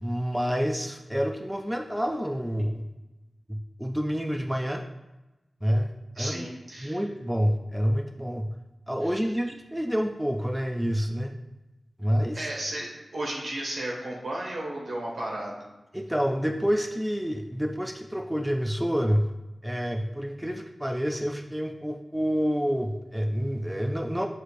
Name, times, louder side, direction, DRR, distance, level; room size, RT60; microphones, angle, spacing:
voice 1, 0.0-2.9 3.5-4.8 5.6-6.5 6.8-8.5 8.9-11.3 12.0-12.5 15.9-19.3 19.6-24.3, equal, 5° right, 4 dB, 0.4 m, -28 dB
voice 2, 6.2-7.0 9.0-9.2 12.3-15.6, right 1 dB, 75° right, -3 dB, 1.9 m, -34 dB
6.4 x 6.3 x 2.6 m, 1.0 s
wide cardioid pair, 100°, 0 cm